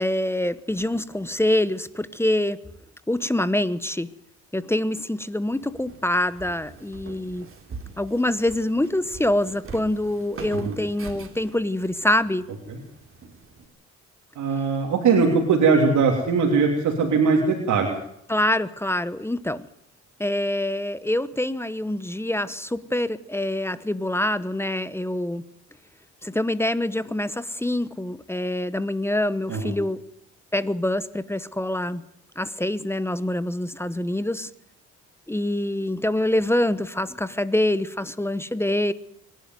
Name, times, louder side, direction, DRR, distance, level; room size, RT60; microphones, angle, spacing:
voice 1, 0.0-2.6 3.1-4.1 4.5-7.5 8.0-12.5 18.3-19.6 20.2-25.4 26.2-30.0 30.5-32.0 32.4-34.5 35.3-38.9, left 1 dB, 10° left, 15 dB, 1.0 m, -25 dB
Walk footsteps, 5.5-13.7, right 4 dB, 45° right, 3.7 m, -43 dB
voice 2, 14.3-17.9 29.5-29.7, right 5 dB, 70° right, 0 dB, 3.3 m, -20 dB
24.5 x 11.5 x 9.4 m, 0.73 s
cardioid pair, 90°, 30 cm